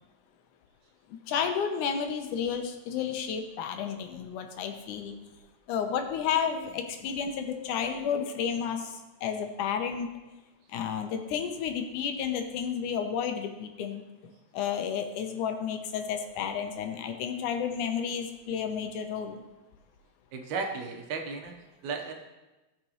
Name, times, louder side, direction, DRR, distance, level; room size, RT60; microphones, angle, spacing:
voice 1, 1.3-5.1 5.7-10.1 10.7-14.0 14.5-19.4, left 7 dB, 90° left, 6 dB, 2.4 m, -31 dB
voice 2, 20.3-21.5 21.8-22.1, right 4 dB, 75° right, 3 dB, 2.3 m, -34 dB
17.0 x 6.0 x 3.1 m, 1.1 s
omnidirectional pair, 3.4 m